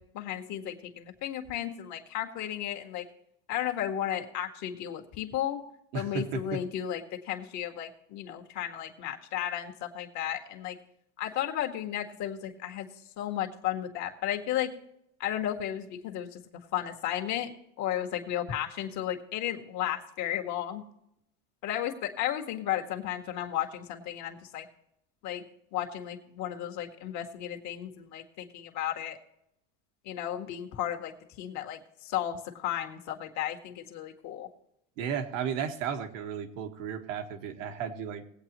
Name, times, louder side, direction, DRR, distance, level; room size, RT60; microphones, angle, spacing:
voice 1, 0.0-3.1 3.5-5.6 5.9-10.8 11.2-12.9 13.2-14.7 15.2-16.4 16.7-17.5 17.8-20.8 21.6-24.7 25.2-25.4 25.7-29.2 30.1-34.5, left 11 dB, 45° left, 2 dB, 1.8 m, -34 dB
voice 2, 5.9-6.6 35.0-38.2, right 7 dB, 80° right, 6 dB, 1.6 m, -34 dB
20.0 x 8.4 x 3.0 m, 0.79 s
supercardioid pair, 125°, 38 cm